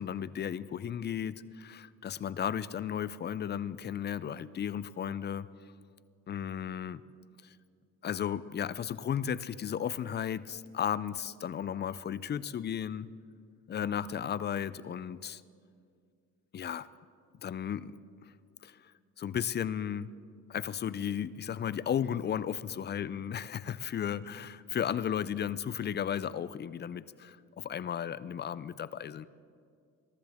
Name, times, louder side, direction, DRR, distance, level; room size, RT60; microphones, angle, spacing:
voice 1, 0.0-5.5 6.3-7.0 8.0-13.1 13.7-15.4 16.5-16.9 17.4-17.9 18.6-18.8 19.2-20.1 20.5-29.3, left 9 dB, 35° left, 18 dB, 0.4 m, -34 dB
22.0 x 12.5 x 3.6 m, 2.3 s
cardioid pair, 90°, 30 cm